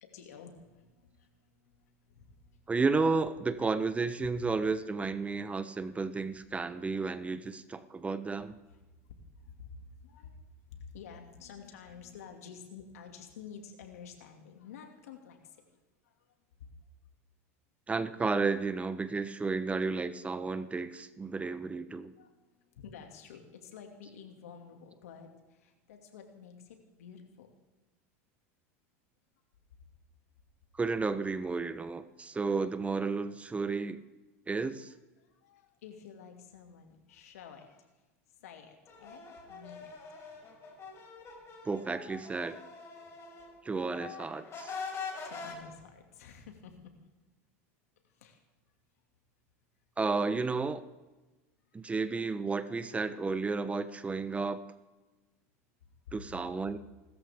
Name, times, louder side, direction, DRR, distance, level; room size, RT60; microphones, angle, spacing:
voice 1, 0.0-1.3 1.6-2.6 8.7-8.8 9.4-10.4 10.7-15.4 22.1-22.3 22.7-27.5 35.3-37.9 38.4-39.9 45.2-46.9 48.2-48.4 56.1-56.2, left 6 dB, 85° left, 4 dB, 2.3 m, -50 dB
voice 2, 2.7-8.6 17.9-22.1 30.7-34.0 34.5-34.9 41.6-42.6 43.6-44.7 50.0-50.8 51.7-54.6 56.1-56.8, right 4 dB, 15° right, 13 dB, 0.9 m, -32 dB
sound 1, 38.9-43.5 43.8-45.5, left 5 dB, 35° left, 5.4 m, -44 dB
29.0 x 13.5 x 3.6 m, 1.2 s
hypercardioid pair, 100°, 8 cm